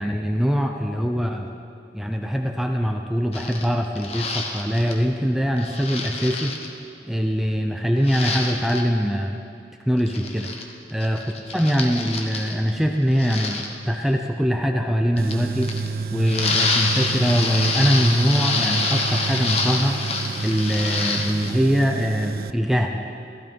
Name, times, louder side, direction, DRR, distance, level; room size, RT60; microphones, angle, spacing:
voice 1, 0.0-1.5 1.9-6.5 7.1-9.4 9.9-10.5 10.9-11.2 11.5-15.7 16.1-20.0 20.4-23.1, equal, ahead, 2 dB, 0.6 m, -22 dB
sound 1, 3.3-5.0 5.6-6.7 8.0-8.8 10.0-10.6 10.9-12.7 13.1-13.7 15.2-15.9 16.2-21.5, left 3 dB, 35° left, 1.2 m, -27 dB
Tools, 15.2-22.5, right 4 dB, 55° right, 0.4 m, -29 dB
15.5 x 14.5 x 5.3 m, 2.5 s
head